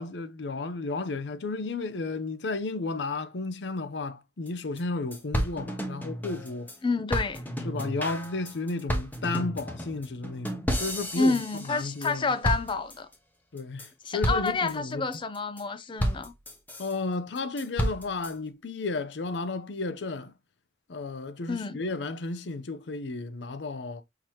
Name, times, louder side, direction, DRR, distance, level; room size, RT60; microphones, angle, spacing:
voice 1, 0.0-6.7 7.6-12.3 13.5-15.1 16.8-20.3 20.9-24.0, left 3 dB, 75° left, 0.6 m, -33 dB
sound 1, 4.5-4.6 4.8-4.9 5.1-6.8 7.1-12.1 12.4-13.1 13.6-13.9 14.2-14.7 15.1-15.6 16.0-16.9 17.4-18.3, equal, 10° left, 0.8 m, -32 dB
voice 2, 6.8-7.4 11.2-13.1 14.1-16.3 21.5-21.8, left 3 dB, 30° left, 0.4 m, -28 dB
5.8 x 2.8 x 3.1 m
head